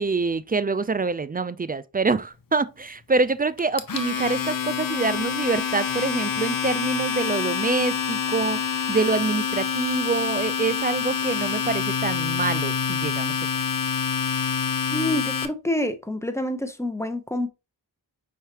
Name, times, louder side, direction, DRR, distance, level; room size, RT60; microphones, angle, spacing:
voice 1, 0.0-13.4, right 4 dB, 20° right, 0.3 m, -26 dB
Domestic sounds home sounds, 3.6-15.5, left 7 dB, 45° left, 0.8 m, -26 dB
voice 2, 14.9-17.5, left 1 dB, 5° left, 1.0 m, -27 dB
5.5 x 3.4 x 2.9 m
cardioid pair, 40°, 46 cm